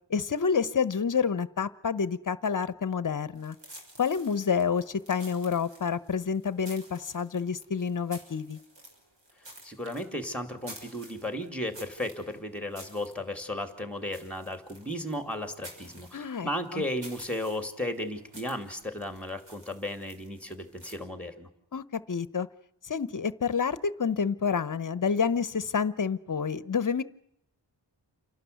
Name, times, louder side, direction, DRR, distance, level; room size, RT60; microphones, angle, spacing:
voice 1, 0.1-3.6 4.0-8.6 16.1-16.8 21.7-22.5 22.8-27.0, left 6 dB, 45° left, 17 dB, 0.9 m, -28 dB
sound 1, 3.3-21.0, right 1 dB, 70° right, 6.3 m, -51 dB
voice 2, 9.6-21.5, left 1 dB, 5° left, 8 dB, 2.7 m, -35 dB
28.5 x 12.0 x 9.3 m, 0.76 s
wide cardioid pair, 110°, 45 cm